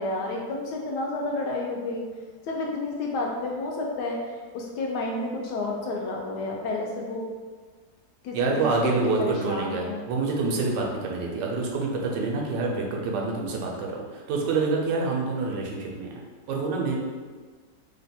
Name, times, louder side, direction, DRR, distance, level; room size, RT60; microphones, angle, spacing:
voice 1, 0.0-2.0 2.5-7.3 8.2-10.0, left 2 dB, 75° left, -1 dB, 1.1 m, -30 dB
voice 2, 8.3-16.2 16.5-17.0, right 3 dB, 85° right, 0 dB, 1.2 m, -27 dB
3.2 x 2.2 x 4.1 m, 1.5 s
omnidirectional pair, 1.9 m